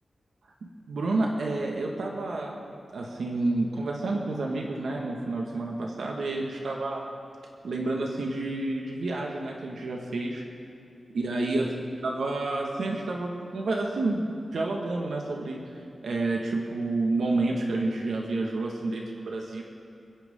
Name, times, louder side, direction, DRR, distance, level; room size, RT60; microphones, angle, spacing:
voice 1, 0.9-2.6 2.9-7.0 7.6-10.4 11.1-11.7 12.0-15.6 16.0-19.6, right 2 dB, 80° right, 0 dB, 1.8 m, -29 dB
29.0 x 10.5 x 3.8 m, 3.0 s
wide cardioid pair, 160°, 0 cm